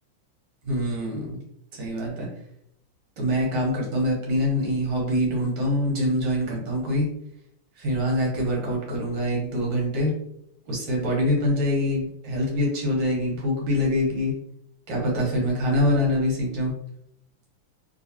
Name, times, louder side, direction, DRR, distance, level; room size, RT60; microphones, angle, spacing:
voice 1, 0.6-1.4 1.7-2.3 3.2-7.1 7.8-10.1 10.7-14.3 14.9-16.7, left 1 dB, 70° right, -2 dB, 1.9 m, -24 dB
3.8 x 2.6 x 2.8 m, 0.74 s
omnidirectional pair, 2.2 m